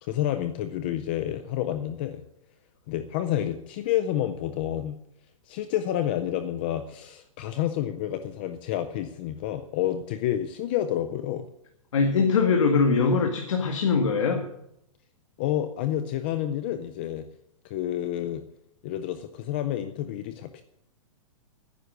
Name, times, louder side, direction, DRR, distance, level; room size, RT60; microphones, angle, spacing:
voice 1, 0.0-2.2 2.9-5.0 5.5-11.5 15.4-17.2 17.6-18.4 18.8-20.6, left 11 dB, 20° left, 10 dB, 0.4 m, -29 dB
voice 2, 11.9-14.4, left 5 dB, 60° left, 2 dB, 2.1 m, -22 dB
14.0 x 10.0 x 6.5 m, 0.80 s
hypercardioid pair, 180°, 17 cm